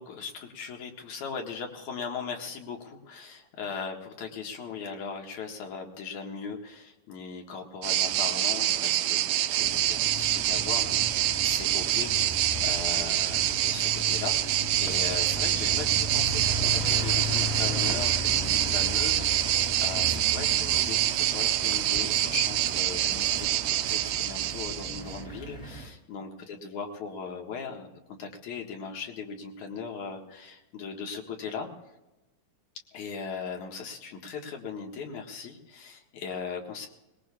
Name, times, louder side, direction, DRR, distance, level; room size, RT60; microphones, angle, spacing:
voice 1, 0.0-31.7 32.9-36.9, left 5 dB, 70° left, 2 dB, 3.0 m, -39 dB
sound 1, 7.8-25.2, right 13 dB, 80° right, 2.0 m, -26 dB
sound 2, 9.6-25.9, left 1 dB, 15° left, 1.7 m, -37 dB
22.5 x 20.5 x 2.4 m, 1.0 s
omnidirectional pair, 3.7 m